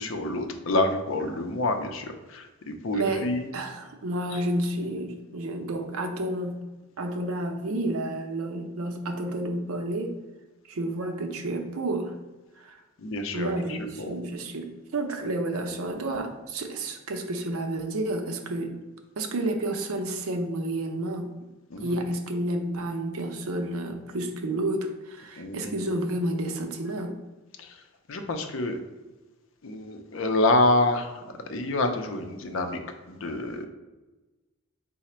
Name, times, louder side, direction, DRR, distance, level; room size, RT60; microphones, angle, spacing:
voice 1, 0.0-3.5 4.3-4.4 13.0-14.2 21.7-22.0 25.4-25.7 27.6-27.8 28.1-28.8 29.6-32.8 33.1-33.7, left 2 dB, 65° left, 6 dB, 0.5 m, -27 dB
voice 2, 2.9-6.6 7.0-10.1 10.6-12.1 12.6-12.8 13.3-18.8 19.2-21.3 21.8-27.1, right 1 dB, 80° right, 5 dB, 0.6 m, -30 dB
4.8 x 2.1 x 4.2 m, 1.1 s
head